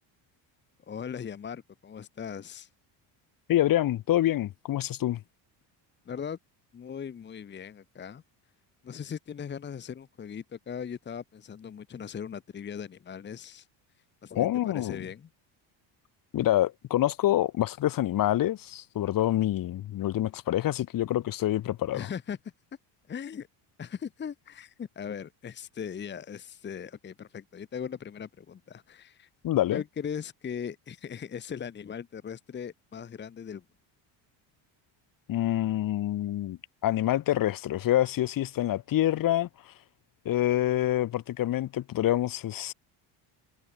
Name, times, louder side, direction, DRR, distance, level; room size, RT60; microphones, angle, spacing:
voice 1, 0.9-2.7 6.0-6.4 6.7-8.2 8.8-13.7 14.2-15.3 21.9-22.4 23.1-23.5 23.8-29.3 29.7-33.6, left 7 dB, 25° left, 1.4 m, -39 dB
voice 2, 3.5-5.2 14.3-15.0 16.3-22.0 29.4-29.8 35.3-39.5 40.2-42.7, left 13 dB, 45° left, 2.6 m, -26 dB
cardioid pair, 160°, 45 cm